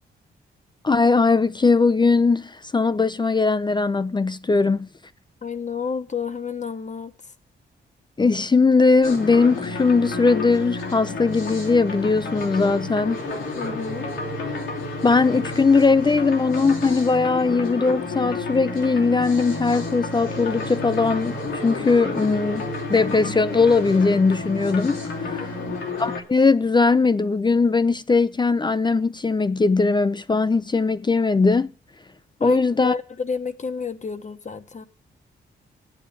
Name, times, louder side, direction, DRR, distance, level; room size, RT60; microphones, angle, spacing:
voice 1, 0.8-4.9 8.2-13.2 15.0-25.5 26.0-31.7 32.4-32.9, left 4 dB, 25° left, 0.5 m, -20 dB
voice 2, 5.4-7.3 13.6-14.1 25.4-25.8 32.4-34.9, left 5 dB, 40° left, 1.1 m, -30 dB
sound 1, 9.0-26.2, left 3 dB, 85° left, 2.9 m, -30 dB
9.1 x 7.7 x 7.0 m
cardioid pair, 70°, 20 cm